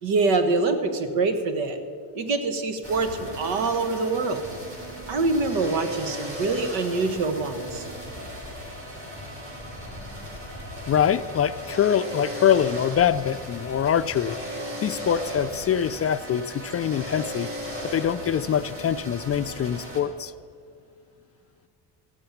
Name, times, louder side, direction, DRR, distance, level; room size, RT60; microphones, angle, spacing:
voice 1, 0.0-1.8 2.1-4.4 5.1-7.8, right 3 dB, 85° right, 9 dB, 1.4 m, -25 dB
sound 1, 2.8-20.0, equal, 30° right, 4.6 m, -36 dB
voice 2, 10.9-14.4 14.8-17.5 17.8-20.3, left 9 dB, 35° left, 12 dB, 0.4 m, -24 dB
14.5 x 7.0 x 9.1 m, 2.2 s
cardioid pair, 90°, 44 cm